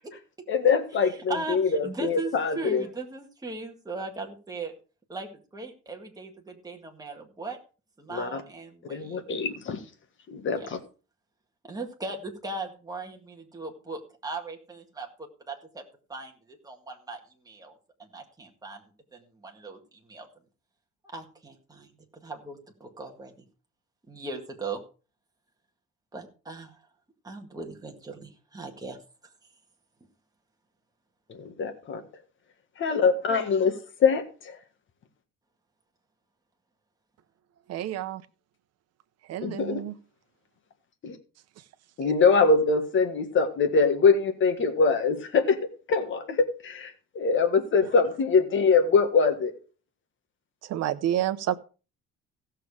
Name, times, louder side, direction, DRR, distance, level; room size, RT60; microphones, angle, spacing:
voice 1, 0.5-2.8 8.1-8.4 8.9-9.8 10.3-10.8 31.3-32.0 32.8-34.6 39.4-39.8 41.0-41.2 42.0-45.6 45.9-49.5, left 5 dB, 40° left, 1.7 m, -23 dB
voice 2, 1.3-4.7 5.1-7.6 8.0-9.3 10.5-10.7 11.6-17.2 17.5-17.7 18.0-19.8 20.1-20.3 21.1-23.4 24.1-24.8 26.1-26.8 27.2-29.0, right 3 dB, 10° right, 1.9 m, -38 dB
voice 3, 37.7-38.2 39.3-39.9 42.0-42.1 50.6-51.5, right 11 dB, 55° right, 0.9 m, -29 dB
15.5 x 6.8 x 4.8 m
cardioid pair, 170°, 30 cm